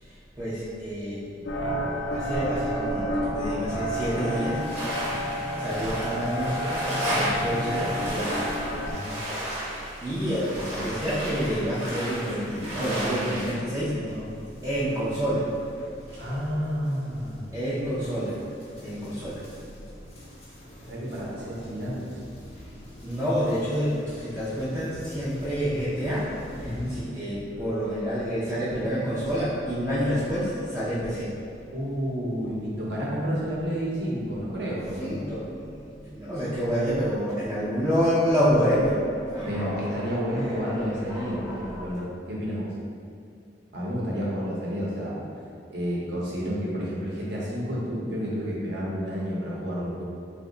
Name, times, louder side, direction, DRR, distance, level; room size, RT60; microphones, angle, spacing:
voice 1, 0.4-1.2 2.1-4.6 5.6-6.8 7.0-8.3 10.0-14.0 14.6-15.5 17.5-18.3 18.8-19.4 23.0-26.3 26.9-31.3 35.0-35.5 36.1-42.1, equal, 15° right, -11 dB, 0.4 m, -28 dB
sound 1, 1.4-8.9, equal, 80° left, 0.4 m, -30 dB
sound 2, 3.9-13.5, right 1 dB, 40° right, 0.9 m, -33 dB
voice 2, 8.9-9.2 13.9-14.2 16.1-17.4 20.9-22.0 26.6-27.0 31.7-35.2 39.5-42.7 43.7-45.2 45.7-50.0, equal, 65° right, -6 dB, 0.7 m, -30 dB
sound 3, 14.1-27.0, equal, 35° left, 0.7 m, -46 dB
2.8 x 2.1 x 3.7 m, 2.4 s
head